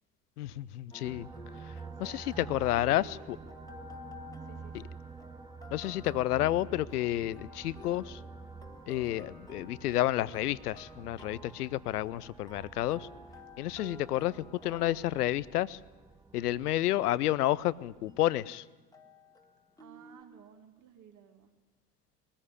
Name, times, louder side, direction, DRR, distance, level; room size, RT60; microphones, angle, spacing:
voice 1, 0.4-1.3 1.6-3.4 4.7-4.8 5.7-8.2 8.9-13.1 13.6-14.3 14.6-15.8 16.3-18.7, left 14 dB, 70° left, 21 dB, 0.7 m, -30 dB
sound 1, 0.9-20.2, left 3 dB, 5° left, 1.7 m, -53 dB
sound 2, 1.0-18.4, right 5 dB, 10° right, 0.9 m, -49 dB
voice 2, 1.8-3.5 4.4-4.8 13.8-14.1 19.8-21.5, right 8 dB, 40° right, 4 dB, 2.4 m, -54 dB
21.5 x 14.5 x 9.9 m, 1.1 s
figure-of-eight pair, 65°, 48 cm